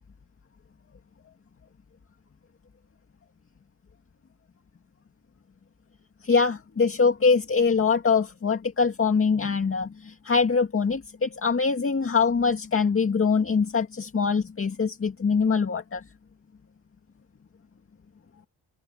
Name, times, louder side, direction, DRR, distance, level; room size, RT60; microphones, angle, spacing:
voice 1, 6.2-16.0, left 5 dB, 35° left, 2.1 m, -23 dB
wide cardioid pair, 150°, 38 cm